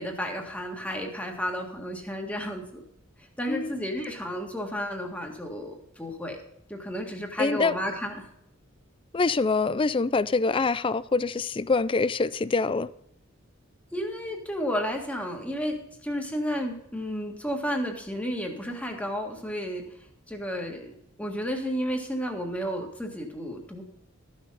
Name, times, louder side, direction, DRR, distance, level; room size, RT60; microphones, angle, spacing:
voice 1, 0.0-2.8 3.4-6.4 6.7-8.3 13.9-19.9 20.3-23.8, equal, 5° left, 1.7 m, -32 dB
voice 2, 7.4-7.8 9.1-12.9, left 4 dB, 25° left, 0.4 m, -25 dB
13.5 x 6.6 x 5.5 m
head